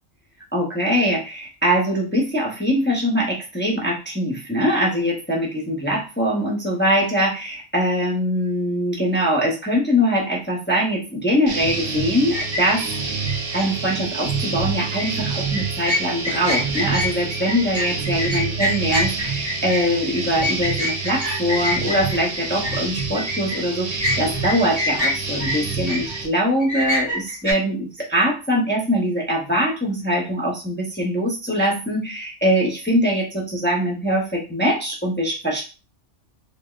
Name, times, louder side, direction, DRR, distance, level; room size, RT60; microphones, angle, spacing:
voice 1, 0.5-12.9 13.5-35.6, equal, 15° left, -3 dB, 0.3 m, -22 dB
sound 1, 11.5-26.3, right 4 dB, 70° right, 1.0 m, -28 dB
sound 2, 12.3-13.6 14.7-15.1 15.5-23.6 24.0-26.2 26.6-27.5, left 1 dB, 30° right, 1.1 m, -26 dB
3.2 x 2.1 x 2.3 m, 0.31 s
omnidirectional pair, 1.3 m